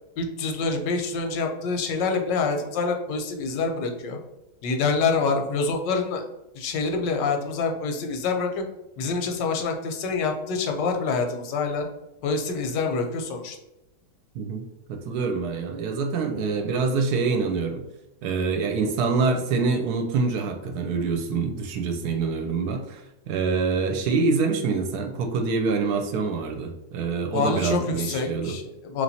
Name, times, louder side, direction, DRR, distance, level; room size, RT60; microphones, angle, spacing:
voice 1, 0.2-4.2 4.6-6.3 6.5-8.6 9.0-11.9 12.2-13.6 27.3-29.0, left 4 dB, 90° left, 4 dB, 1.3 m, -26 dB
voice 2, 14.3-17.8 18.2-28.6, right 4 dB, 75° right, 5 dB, 1.0 m, -26 dB
3.2 x 2.9 x 4.0 m, 0.93 s
omnidirectional pair, 1.8 m